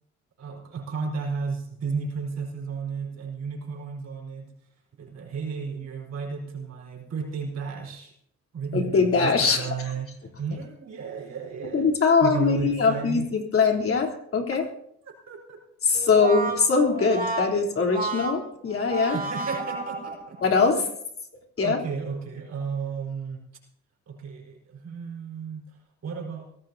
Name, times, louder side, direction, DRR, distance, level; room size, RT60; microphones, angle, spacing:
voice 1, 0.4-4.5 5.0-8.1 8.5-11.9 12.2-13.3 15.3-15.6 18.1-18.2 19.1-20.4 20.7-20.9 21.6-23.4 24.1-25.7 26.0-26.4, right 5 dB, 60° right, -1 dB, 4.5 m, -33 dB
voice 2, 8.7-9.7 11.7-14.6 15.8-19.2 20.4-20.8 21.6-21.8, left 5 dB, 45° left, 1 dB, 3.5 m, -22 dB
Brass instrument, 15.9-20.5, right 3 dB, 30° right, 3.0 m, -32 dB
23.5 x 17.0 x 2.8 m, 0.73 s
cardioid pair, 90°, 30 cm